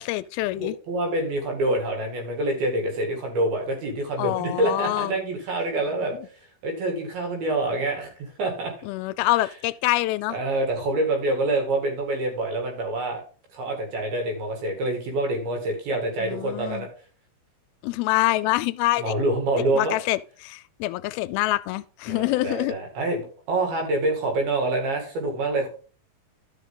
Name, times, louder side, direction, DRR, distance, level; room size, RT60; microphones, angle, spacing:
voice 1, 0.0-0.8 4.2-5.1 6.2-6.3 8.8-10.4 16.2-16.9 17.8-19.1 19.7-22.8, left 18 dB, 85° left, 2.4 m, -26 dB
voice 2, 0.6-6.2 6.6-8.7 10.3-13.2 13.5-16.9 19.0-20.0 22.1-25.7, right 2 dB, 75° right, 4.2 m, -26 dB
12.0 x 5.7 x 3.8 m
omnidirectional pair, 4.3 m